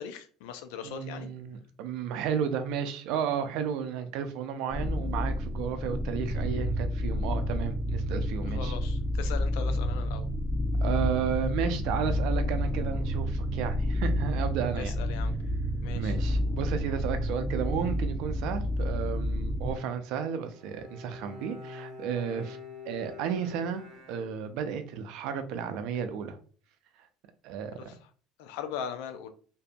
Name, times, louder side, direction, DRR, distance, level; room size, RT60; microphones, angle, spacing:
voice 1, 0.0-1.3 8.4-10.3 14.8-15.3 15.8-16.2 27.8-28.0 28.4-29.3, left 7 dB, 80° left, 0.4 m, -39 dB
voice 2, 0.8-8.8 10.8-14.9 16.0-22.6 22.9-26.4 27.4-27.9, right 7 dB, 70° right, 0.4 m, -33 dB
sound 1, 4.7-19.7, equal, 10° left, 0.6 m, -30 dB
Bowed string instrument, 20.5-24.9, left 4 dB, 45° right, 0.8 m, -46 dB
2.6 x 2.5 x 2.2 m
supercardioid pair, 95°, 0 cm